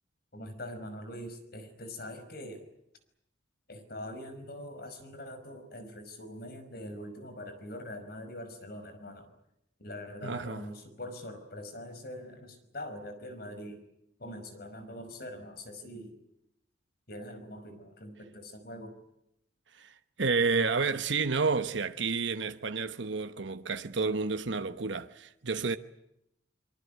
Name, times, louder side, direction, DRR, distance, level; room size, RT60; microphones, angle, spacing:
voice 1, 0.3-2.7 3.7-9.3 9.8-13.8 14.2-16.1 17.1-19.0, left 1 dB, 55° left, 5.3 m, -43 dB
voice 2, 10.2-10.6 19.7-25.8, right 4 dB, 80° right, 1.1 m, -30 dB
25.0 x 23.5 x 9.3 m
head